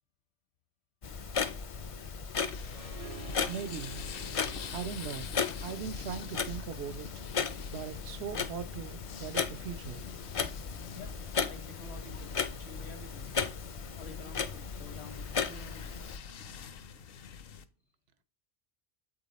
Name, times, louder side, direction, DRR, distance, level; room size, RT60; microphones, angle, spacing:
Clock, 1.0-16.2, left 5 dB, 45° left, 0.4 m, -36 dB
sound 1, 2.5-17.6, left 6 dB, 65° left, 0.8 m, -46 dB
Harp, 2.7-7.7, right 9 dB, 45° right, 0.5 m, -52 dB
voice 1, 3.5-4.0 4.7-5.3 5.6-7.2 7.7-10.0, right 8 dB, 75° right, 0.9 m, -40 dB
voice 2, 11.5-13.3 14.0-16.0, left 3 dB, 85° left, 1.5 m, -50 dB
8.2 x 3.8 x 4.0 m
omnidirectional pair, 1.1 m